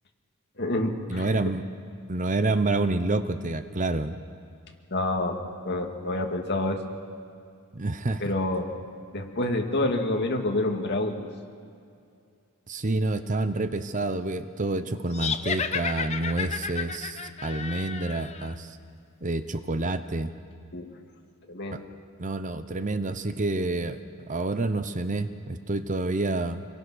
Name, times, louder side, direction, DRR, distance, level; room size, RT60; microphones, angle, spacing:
voice 1, 0.6-1.3 4.9-5.4 5.6-6.8 8.2-8.7 9.1-11.2 20.7-20.9 21.5-21.8, left 2 dB, 50° left, 2 dB, 2.2 m, -27 dB
voice 2, 1.1-1.6 2.1-4.2 7.7-8.2 12.7-18.8 19.2-20.3 21.7-21.8 22.2-24.0 24.3-26.6, right 2 dB, 35° right, 10 dB, 0.8 m, -28 dB
sound 1, 15.1-18.5, left 6 dB, 30° left, 0.8 m, -32 dB
26.0 x 21.5 x 6.3 m, 2.4 s
head